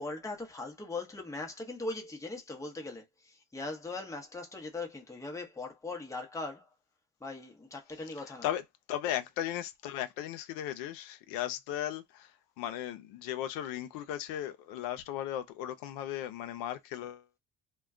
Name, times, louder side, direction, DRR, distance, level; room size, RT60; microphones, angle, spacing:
voice 1, 0.0-6.7 7.2-8.5, left 3 dB, 10° left, 0.8 m, -40 dB
voice 2, 8.9-17.4, left 12 dB, 90° left, 0.5 m, -36 dB
2.2 x 2.1 x 3.6 m
cardioid pair, 115°, 33 cm